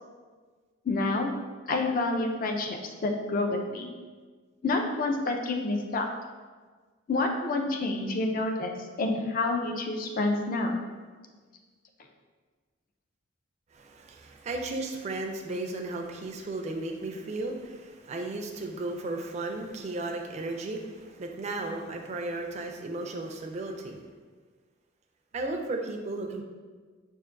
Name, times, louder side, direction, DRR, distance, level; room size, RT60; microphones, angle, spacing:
voice 1, 0.9-1.3 1.7-3.9 4.6-6.1 7.1-10.8, left 2 dB, 45° left, 3 dB, 0.4 m, -28 dB
voice 2, 13.7-24.0 25.3-26.4, right 2 dB, 35° right, 2 dB, 0.3 m, -35 dB
5.6 x 2.5 x 2.5 m, 1.4 s
head